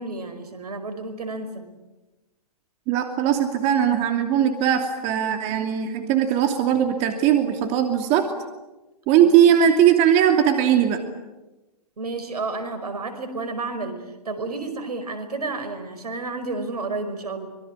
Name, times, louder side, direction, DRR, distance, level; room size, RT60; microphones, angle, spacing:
voice 1, 0.0-1.7 9.2-9.3 12.0-14.0 14.3-17.5, right 3 dB, 75° right, 9 dB, 5.2 m, -31 dB
voice 2, 2.9-8.3 9.1-11.0, right 9 dB, 35° right, 6 dB, 2.7 m, -19 dB
25.5 x 23.0 x 8.9 m, 1.1 s
hypercardioid pair, 120°, 20 cm